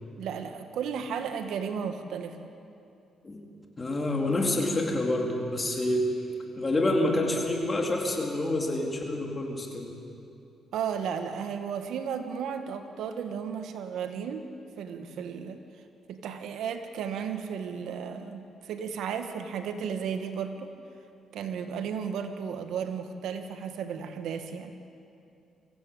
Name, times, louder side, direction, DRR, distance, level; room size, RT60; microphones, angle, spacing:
voice 1, 0.2-2.5 10.7-14.5 14.8-15.6 16.1-20.7 21.3-24.7, right 7 dB, 80° right, 7 dB, 1.6 m, -34 dB
voice 2, 3.8-6.1 6.6-9.9, left 1 dB, 25° left, 0 dB, 4.1 m, -27 dB
24.5 x 16.0 x 8.9 m, 2.6 s
cardioid pair, 90°, 0 cm